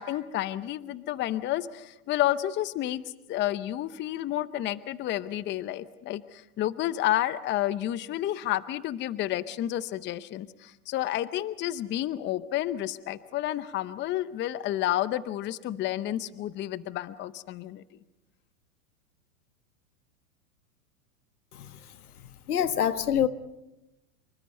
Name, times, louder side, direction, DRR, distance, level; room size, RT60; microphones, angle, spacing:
voice 1, 0.0-3.0 3.3-17.8, left 13 dB, 25° left, 0.7 m, -30 dB
voice 2, 22.5-23.3, left 9 dB, 85° left, 1.5 m, -25 dB
27.0 x 23.5 x 5.4 m
hypercardioid pair, 110°, 44 cm